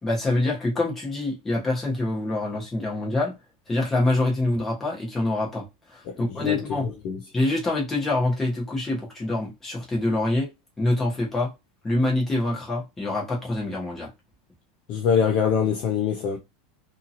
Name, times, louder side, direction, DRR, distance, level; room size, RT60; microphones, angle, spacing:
voice 1, 0.0-3.3 3.7-5.6 5.9-6.9 7.3-10.5 10.8-11.5 11.8-14.1, left 2 dB, 10° left, 1.0 m, -25 dB
voice 2, 6.1-7.2 14.9-16.4, left 7 dB, 30° left, 0.5 m, -24 dB
2.8 x 2.7 x 2.5 m
supercardioid pair, 180°, 3 cm